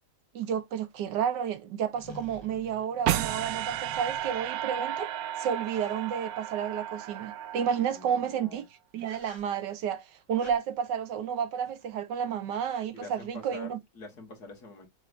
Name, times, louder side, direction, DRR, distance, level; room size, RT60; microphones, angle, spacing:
voice 1, 0.3-5.1 5.4-8.6 8.9-13.8, right 8 dB, 85° right, 1.5 m, -31 dB
sound 1, 1.0-1.1 2.0-4.8 5.7-7.0 8.4-8.7 9.0-9.7 10.4-10.6 11.6-12.0 12.2-12.3 12.5-12.9, left 2 dB, 20° left, 0.8 m, -52 dB
sound 2, 3.1-8.3, right 12 dB, 70° right, 0.9 m, -33 dB
voice 2, 7.7-8.6 12.9-14.9, left 3 dB, 65° left, 2.3 m, -46 dB
6.7 x 3.2 x 2.5 m
omnidirectional pair, 1.8 m